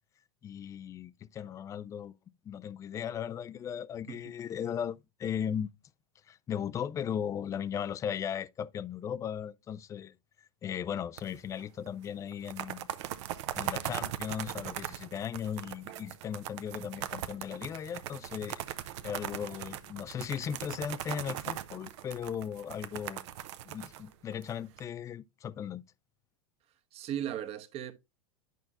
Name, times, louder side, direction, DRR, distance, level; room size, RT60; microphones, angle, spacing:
voice 1, 0.4-2.1 2.4-5.7 6.3-12.9 13.6-18.6 19.0-23.3 23.6-25.8, left 8 dB, 20° left, 0.3 m, -37 dB
sound 1, 11.2-11.6 11.9-12.0 12.3-24.8, right 12 dB, 55° right, 0.7 m, -39 dB
voice 2, 26.9-27.9, right 10 dB, 35° right, 1.1 m, -36 dB
10.5 x 5.7 x 2.5 m
hypercardioid pair, 95°, 17 cm